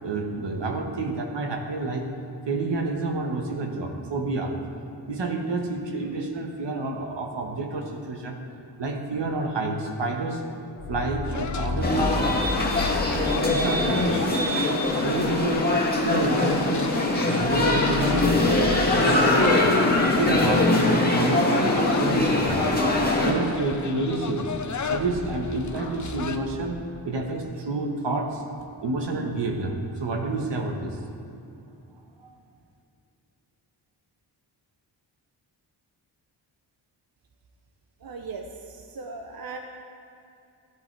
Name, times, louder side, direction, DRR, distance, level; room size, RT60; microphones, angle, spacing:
voice 1, 0.0-2.1 2.5-4.6 5.1-8.4 8.8-10.4 10.9-12.2 13.5-15.8 16.0-18.6 18.9-22.7 23.2-24.6 24.9-28.4 28.8-31.0, right 2 dB, 70° right, 2 dB, 1.4 m, -29 dB
sound 1, 10.6-17.1 17.4-20.8 22.2-23.4 24.1-26.7, left 2 dB, 70° left, 1.6 m, -34 dB
sound 2, 11.3-26.4, left 5 dB, 40° left, 0.7 m, -36 dB
sound 3, 11.8-23.3, left 2 dB, 20° left, 1.8 m, -22 dB
voice 2, 38.0-39.6, right 4 dB, 50° right, 3 dB, 0.8 m, -38 dB
14.0 x 11.0 x 3.4 m, 2.7 s
cardioid pair, 75°, 45 cm